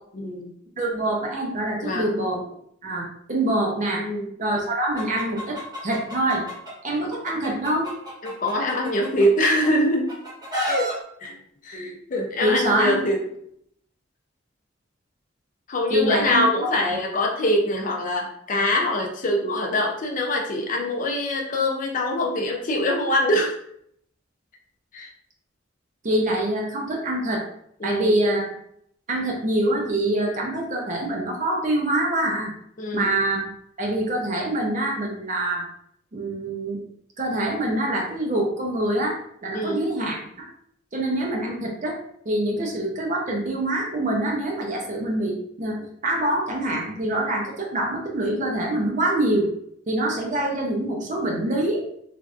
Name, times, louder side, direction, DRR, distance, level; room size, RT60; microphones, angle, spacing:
voice 1, 0.1-0.5 1.8-2.1 4.0-4.3 8.2-10.1 10.7-10.9 11.2-11.4 11.6-13.2 15.7-23.6 24.9-25.1 27.8-28.1 32.8-33.1 39.5-39.8, left 1 dB, 40° left, 1 dB, 0.5 m, -24 dB
voice 2, 0.8-2.4 2.8-4.1 4.4-6.4 6.8-7.9 12.4-13.0 15.9-16.7 26.0-27.4 27.8-28.6 29.1-32.5 32.9-33.5 33.8-35.7 36.1-36.8 37.2-40.5 40.9-45.8 46.0-49.5 49.9-51.8, right 1 dB, 40° right, -1 dB, 0.6 m, -25 dB
Chicken rooster, 5.0-6.7 7.1-9.7 10.1-10.9, equal, 20° right, 1.0 m, -31 dB
3.3 x 2.6 x 2.4 m, 0.70 s
head